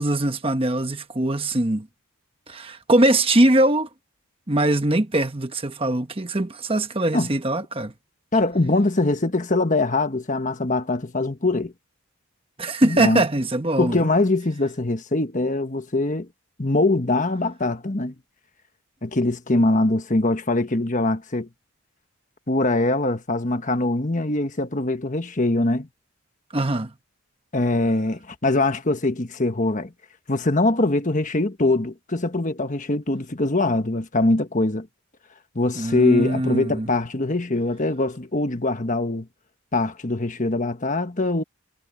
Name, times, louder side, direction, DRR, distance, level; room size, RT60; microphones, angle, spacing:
voice 1, 0.0-1.9 2.5-3.9 4.5-7.9 12.6-14.0 26.5-26.9 35.7-36.9, right 1 dB, 25° right, 1.1 m, -21 dB
voice 2, 8.3-11.7 12.8-13.2 13.8-16.3 16.6-18.1 19.0-21.5 22.5-25.9 27.5-29.9 30.3-34.9 35.5-39.3 39.7-41.4, left 2 dB, 35° left, 1.3 m, -22 dB
head